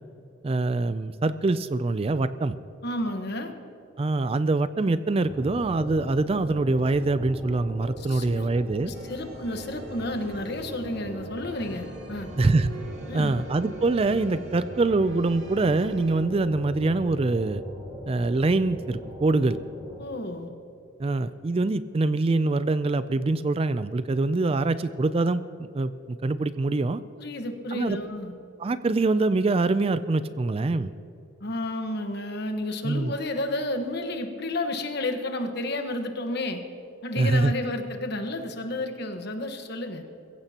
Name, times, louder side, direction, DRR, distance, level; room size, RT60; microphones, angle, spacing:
voice 1, 0.4-2.6 4.0-8.9 12.4-12.7 13.1-17.6 18.1-19.6 21.0-27.0 27.7-28.0 28.6-30.9 32.8-33.1 37.2-37.5, right 3 dB, 30° right, 13 dB, 0.3 m, -24 dB
voice 2, 2.8-3.5 8.0-8.5 8.8-12.3 13.1-13.3 20.0-20.5 27.2-28.3 31.4-36.6 37.0-40.0, left 1 dB, 55° left, 6 dB, 1.2 m, -31 dB
sound 1, 5.2-20.0, equal, 15° right, 4.4 m, -40 dB
sound 2, 8.9-16.2, right 2 dB, 65° right, 2.1 m, -47 dB
22.5 x 15.5 x 2.9 m, 2.6 s
head